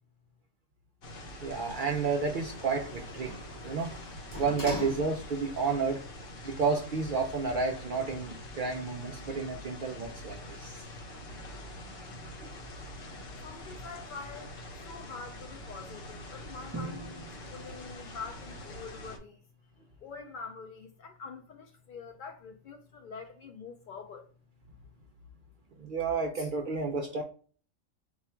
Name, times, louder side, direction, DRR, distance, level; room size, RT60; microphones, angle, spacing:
sound 1, 1.0-19.2, left 1 dB, 55° left, 0.8 m, -45 dB
Sliding door, 1.4-5.6 6.0-6.1, left 1 dB, 20° left, 0.6 m, -43 dB
voice 1, 1.4-3.4 3.6-3.9 4.3-6.0 6.4-10.8 25.8-27.2, right 4 dB, 65° right, 0.5 m, -31 dB
voice 2, 13.4-19.4 20.0-24.3, left 5 dB, 75° left, 0.4 m, -45 dB
Drum, 16.7-18.7, right 2 dB, 20° right, 0.6 m, -43 dB
4.1 x 2.3 x 4.2 m
omnidirectional pair, 1.4 m